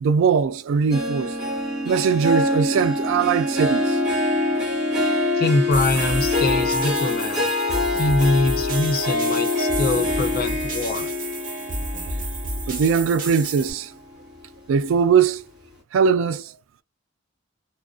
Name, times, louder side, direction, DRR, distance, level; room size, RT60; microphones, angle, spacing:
voice 1, 0.0-1.4 1.8-4.0 12.7-13.9 14.7-15.4 15.9-16.5, right 6 dB, 75° right, 0.3 m, -20 dB
Harp, 0.9-13.6 14.0-14.4 14.9-15.0, left 2 dB, 5° right, 1.1 m, -25 dB
voice 2, 5.3-7.5 7.9-11.1, left 2 dB, 50° left, 0.5 m, -23 dB
sound 1, 5.7-13.7, right 1 dB, 40° right, 0.8 m, -31 dB
2.4 x 2.1 x 2.4 m
head